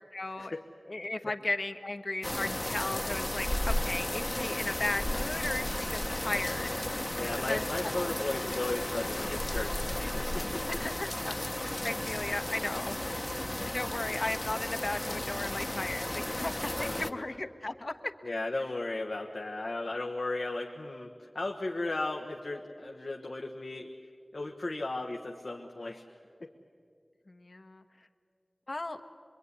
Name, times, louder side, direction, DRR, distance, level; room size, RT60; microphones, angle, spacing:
voice 1, 0.1-0.5 0.9-6.7 7.5-8.1 10.7-11.5 11.8-13.0 13.6-18.1 27.3-27.8 28.7-29.0, left 2 dB, 55° left, 6 dB, 1.3 m, -36 dB
sound 1, 2.2-17.1, left 1 dB, 30° left, 1.1 m, -34 dB
voice 2, 7.2-10.6 16.7-17.2 18.2-23.9 24.3-26.0 26.4-26.5, left 2 dB, 75° left, 0 dB, 1.4 m, -36 dB
25.5 x 22.5 x 9.8 m, 2.3 s
wide cardioid pair, 55°, 0 cm